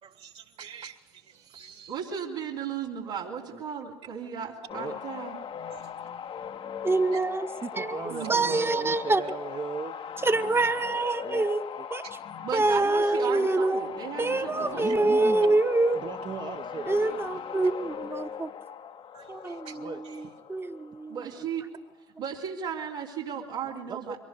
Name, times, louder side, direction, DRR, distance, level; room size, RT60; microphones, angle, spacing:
voice 1, 0.0-2.0 5.7-6.1 7.1-7.2 12.0-12.2 19.1-19.8 20.0-20.2, right 8 dB, 50° right, 7 dB, 2.4 m, -48 dB
voice 2, 1.9-5.4 8.1-8.7 12.4-15.3 21.1-21.7 22.2-24.2, right 7 dB, 75° right, -5 dB, 3.3 m, -36 dB
sound 1, 4.7-21.4, left 8 dB, 45° left, 1.1 m, -39 dB
voice 3, 6.8-7.5 7.7-7.9 8.3-9.2 10.2-12.1 12.5-13.9 14.2-16.0 16.9-18.5 19.3-21.2, right 2 dB, 20° right, 9 dB, 1.3 m, -26 dB
voice 4, 7.6-9.9 11.2-11.5 11.8-11.9 14.6-15.6 15.9-17.3 19.7-20.0 23.9-24.2, right 5 dB, 35° right, 8 dB, 1.0 m, -37 dB
23.5 x 18.5 x 6.9 m, 1.1 s
hypercardioid pair, 65°, 13 cm